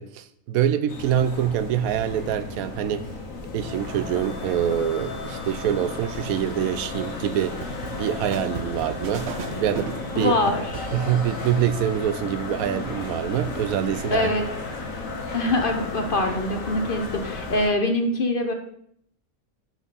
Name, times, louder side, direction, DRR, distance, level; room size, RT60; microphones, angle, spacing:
voice 1, 0.0-3.1 3.5-7.6 7.9-10.3 10.9-14.3, right 10 dB, 85° right, 1.1 m, -25 dB
sound 1, 0.9-17.7, left 3 dB, 70° left, 1.7 m, -34 dB
sound 2, 7.4-11.7, right 4 dB, 60° right, 0.9 m, -36 dB
voice 2, 10.1-10.9 14.1-14.4 15.3-18.5, left 2 dB, 45° left, 1.0 m, -24 dB
11.0 x 4.5 x 4.2 m
omnidirectional pair, 1.4 m